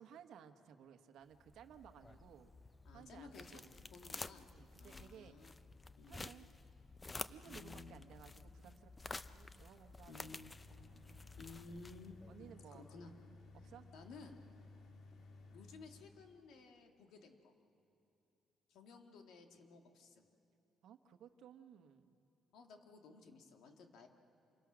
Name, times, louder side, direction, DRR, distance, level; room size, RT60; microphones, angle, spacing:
voice 1, 0.0-2.5 2.9-3.7 4.0-5.6 6.1-6.5 7.3-10.3 10.7-10.8 11.0-11.3 12.3-12.9 13.5-13.9 20.8-22.2, right 8 dB, 80° right, 8 dB, 1.2 m, -59 dB
sound 1, 1.3-12.4, left 3 dB, 20° left, 0.6 m, -52 dB
voice 2, 2.8-3.6 3.9-4.5 4.8-5.5 6.0-6.2 7.4-8.0 10.1-10.5 11.4-13.1 13.9-14.4 15.5-17.5 18.7-20.3 22.5-24.1, left 4 dB, 85° left, 4 dB, 2.0 m, -56 dB
sound 2, 9.8-16.4, left 3 dB, 70° left, 1.9 m, -59 dB
27.5 x 23.0 x 6.3 m, 3.0 s
cardioid pair, 115°, 0 cm